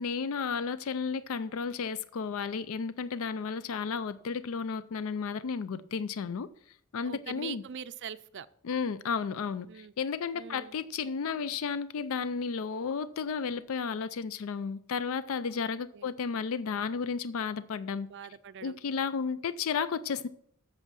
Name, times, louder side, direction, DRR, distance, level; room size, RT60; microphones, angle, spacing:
voice 1, 0.0-6.5 6.9-7.6 8.6-18.1 18.6-20.3, left 5 dB, 70° left, 0.4 m, -33 dB
voice 2, 7.0-8.5 9.7-9.9 10.3-10.8 15.5-15.6 15.9-16.1 18.1-18.8, right 8 dB, 55° right, 0.5 m, -43 dB
8.1 x 6.8 x 6.1 m
head